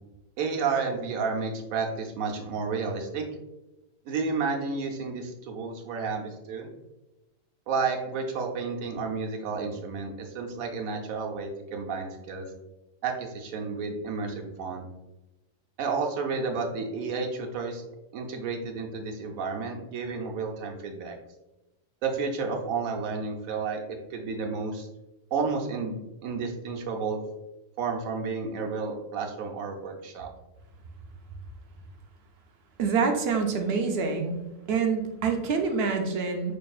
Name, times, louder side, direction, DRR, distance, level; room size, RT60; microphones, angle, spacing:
voice 1, 0.4-3.2 4.0-6.7 7.7-12.4 13.0-14.9 15.8-17.8 18.1-21.2 22.0-23.8 24.1-24.9 25.3-27.2 27.8-30.3, right 4 dB, 85° right, 1 dB, 1.1 m, -31 dB
voice 2, 32.8-34.4 34.7-36.6, right 5 dB, 60° right, 4 dB, 0.7 m, -26 dB
5.1 x 2.7 x 2.3 m, 0.99 s
omnidirectional pair, 1.4 m